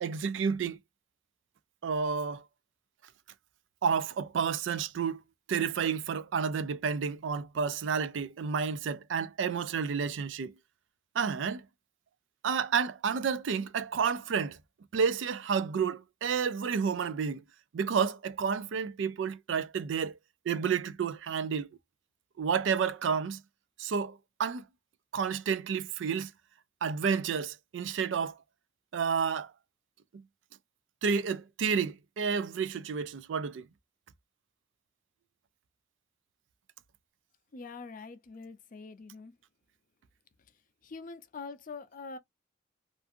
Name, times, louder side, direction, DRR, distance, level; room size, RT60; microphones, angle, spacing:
voice 1, 0.0-0.8 1.8-2.4 3.8-5.2 5.5-10.5 11.1-11.6 12.4-14.6 14.9-17.4 17.7-20.2 20.5-21.7 22.4-23.4 23.8-24.6 25.1-26.3 26.8-28.4 28.9-29.5 31.0-33.7, right 6 dB, 85° right, 0.4 m, -30 dB
voice 2, 37.5-39.3 40.8-42.2, left 4 dB, 50° left, 0.5 m, -44 dB
2.5 x 2.4 x 2.5 m
head